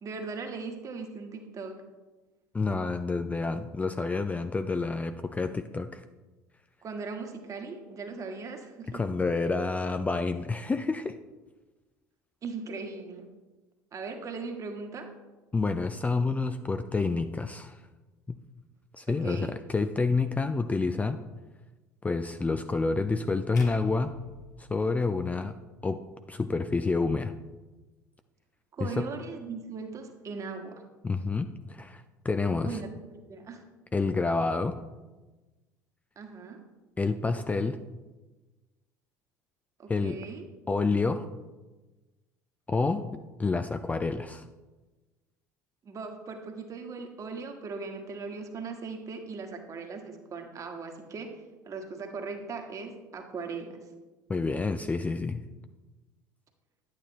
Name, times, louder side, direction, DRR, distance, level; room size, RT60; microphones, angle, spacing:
voice 1, 0.0-1.8 6.8-9.0 12.4-13.3 13.9-15.1 19.1-19.5 28.7-30.8 32.6-33.6 36.1-36.6 39.8-40.4 45.8-53.8, right 4 dB, 35° right, 4 dB, 1.5 m, -39 dB
voice 2, 2.5-6.0 8.9-11.2 15.5-17.8 18.3-18.4 18.9-21.2 22.0-24.1 24.6-25.5 25.8-27.3 28.8-29.1 31.0-32.8 33.9-34.8 37.0-37.8 39.9-40.2 40.7-41.3 42.7-44.4 54.3-55.4, left 3 dB, 15° left, 9 dB, 0.4 m, -28 dB
sound 1, 23.6-25.8, left 3 dB, 85° left, 0.9 m, -49 dB
9.9 x 8.9 x 3.0 m, 1.2 s
figure-of-eight pair, 65°, 9 cm